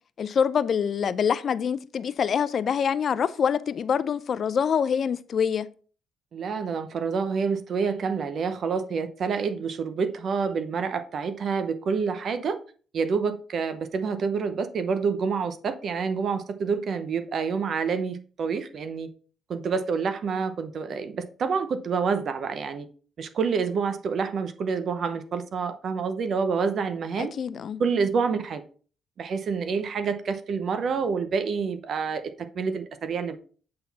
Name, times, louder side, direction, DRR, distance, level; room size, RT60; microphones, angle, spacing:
voice 1, 0.2-5.7 27.2-27.8, left 7 dB, 55° left, 0.5 m, -25 dB
voice 2, 6.3-12.6 12.9-19.1 19.5-22.9 23.2-27.3 27.8-28.6 29.2-33.4, right 5 dB, 60° right, 0.7 m, -28 dB
7.7 x 4.0 x 4.1 m
cardioid pair, 90°, 0 cm